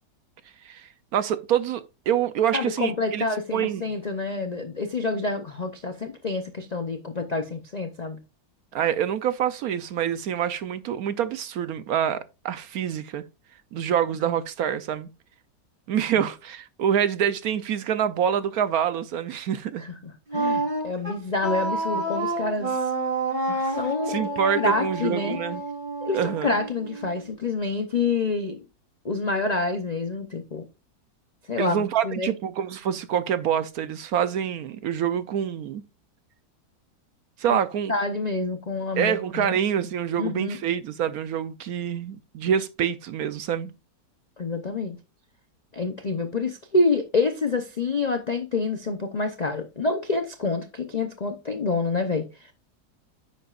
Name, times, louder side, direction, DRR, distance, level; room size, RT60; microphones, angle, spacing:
voice 1, 0.6-3.2 3.5-3.8 8.7-13.2 13.7-15.1 15.9-19.8 23.5-23.8 24.1-25.6 26.1-26.5 31.6-35.8 37.4-37.9 39.0-43.7, right 9 dB, 65° right, 1.0 m, -26 dB
voice 2, 2.5-8.2 16.2-16.3 19.8-22.9 23.7-25.4 26.0-28.6 29.0-30.6 31.5-32.3 37.5-37.6 37.9-39.6 40.2-40.6 44.4-45.0 45.7-52.5, left 3 dB, 50° left, 0.4 m, -27 dB
Wind instrument woodwind instrument, 20.3-27.2, right 2 dB, 25° right, 3.7 m, -29 dB
10.0 x 7.7 x 2.4 m
omnidirectional pair, 1.9 m